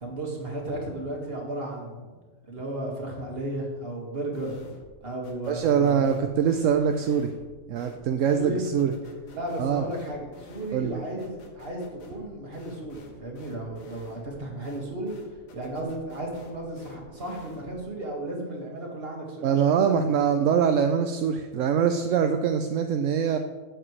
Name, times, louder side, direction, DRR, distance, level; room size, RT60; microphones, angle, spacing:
voice 1, 0.0-2.0 2.5-4.6 5.0-6.2 8.3-8.7 9.3-15.1 15.5-20.0, right 1 dB, 45° right, -1 dB, 2.0 m, -34 dB
sound 1, 4.3-5.0 5.2-17.8, left 3 dB, 80° left, 1.5 m, -50 dB
voice 2, 5.5-7.3 7.7-8.9 9.6-9.9 10.7-11.0 19.4-23.4, right 7 dB, 75° right, 6 dB, 1.0 m, -23 dB
12.0 x 8.0 x 3.2 m, 1.3 s
omnidirectional pair, 1.4 m